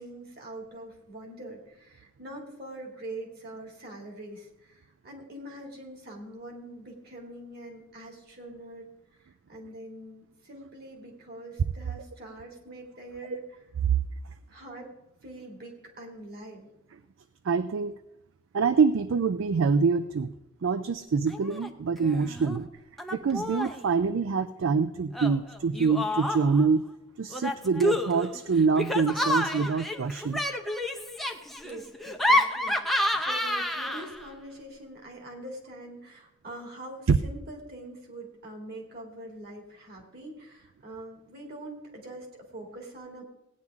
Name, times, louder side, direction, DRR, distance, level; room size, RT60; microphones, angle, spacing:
voice 1, 0.0-8.9 9.2-13.6 14.5-14.9 15.2-16.7 31.3-43.2, right 1 dB, 45° right, 1 dB, 2.4 m, -44 dB
voice 2, 17.4-18.0 18.5-20.3 20.6-22.7 23.1-26.8 27.2-30.4 37.1-37.2, right 5 dB, 65° right, 13 dB, 0.4 m, -25 dB
Laughter, 21.3-21.7 22.0-22.6 23.0-23.8 25.1-26.7 27.3-34.3, left 1 dB, ahead, 0.6 m, -29 dB
17.0 x 9.4 x 3.6 m, 0.90 s
head